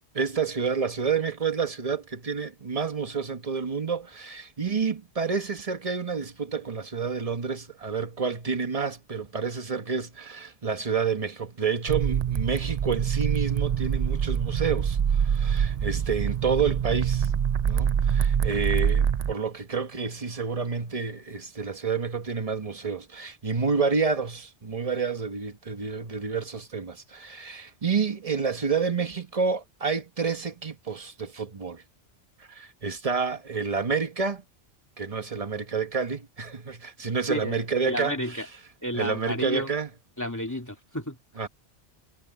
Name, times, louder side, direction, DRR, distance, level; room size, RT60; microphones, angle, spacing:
voice 1, 0.1-17.3 17.7-31.8 32.5-34.4 35.0-38.4 38.9-39.9 41.4-41.5, right 5 dB, 30° right, 1.3 m, -29 dB
sound 1, 11.9-19.3, right 8 dB, 50° right, 0.5 m, -25 dB
voice 2, 37.3-38.5 38.8-39.7 40.2-41.2, left 1 dB, 15° left, 2.6 m, -31 dB
omnidirectional pair, 1.2 m